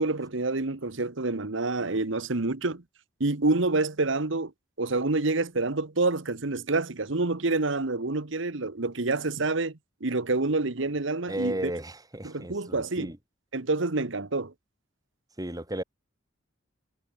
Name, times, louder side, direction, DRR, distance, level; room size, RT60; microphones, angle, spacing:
voice 1, 0.0-2.8 3.2-4.5 4.8-11.7 12.2-13.1 13.5-14.5, right 3 dB, 65° right, 1.4 m, -27 dB
voice 2, 11.3-13.2 15.4-15.8, right 1 dB, 20° right, 7.0 m, -34 dB
head